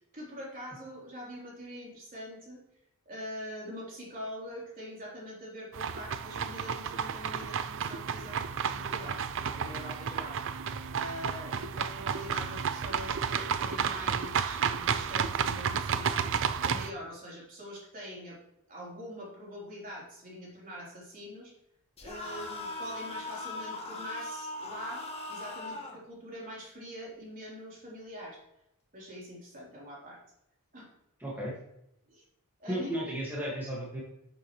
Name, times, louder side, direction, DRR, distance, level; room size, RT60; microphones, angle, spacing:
voice 1, 0.1-2.6 3.1-9.2 9.5-10.4 10.9-16.3 16.6-18.4 18.7-21.5 22.0-28.4 28.9-30.2 30.7-30.9 32.1-32.2 32.6-33.0, equal, 40° right, -4 dB, 3.8 m, -44 dB
sound 1, 5.7-16.9, right 7 dB, 60° right, 0.5 m, -32 dB
sound 2, 22.0-26.0, left 2 dB, 30° left, 1.7 m, -39 dB
voice 2, 31.2-31.5 32.7-34.0, equal, 10° right, -6 dB, 2.0 m, -34 dB
10.5 x 7.2 x 3.2 m, 0.83 s
head